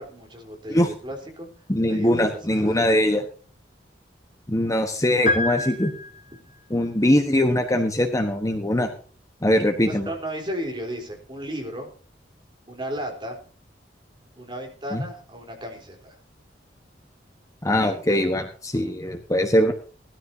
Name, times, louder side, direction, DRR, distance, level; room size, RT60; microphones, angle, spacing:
voice 1, 0.0-1.5 1.9-2.8 9.9-11.9 12.7-13.4 14.4-16.0, equal, 25° right, 2 dB, 3.9 m, -34 dB
voice 2, 1.7-3.2 4.5-5.9 6.7-8.9 9.4-10.1 14.9-15.0 17.6-19.7, left 1 dB, 20° left, 5 dB, 1.2 m, -21 dB
sound 1, 5.3-6.6, left 1 dB, 45° left, 2.7 m, -27 dB
19.0 x 13.5 x 2.8 m, 0.39 s
head